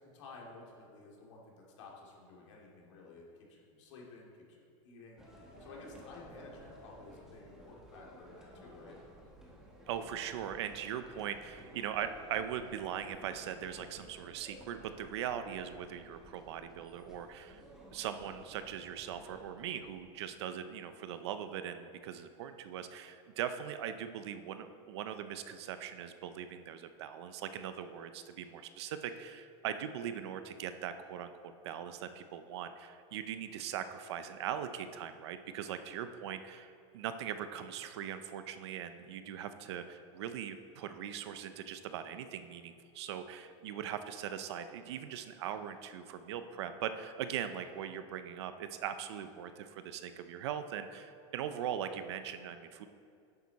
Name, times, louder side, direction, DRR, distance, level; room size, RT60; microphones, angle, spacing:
voice 1, 0.0-9.0, left 3 dB, 65° left, -2 dB, 2.6 m, -53 dB
sound 1, 5.2-20.3, equal, 5° right, 1.1 m, -55 dB
voice 2, 9.9-17.6 17.9-52.9, right 9 dB, 55° right, 10 dB, 0.6 m, -40 dB
11.0 x 8.5 x 4.1 m, 2.4 s
supercardioid pair, 175°, 16 cm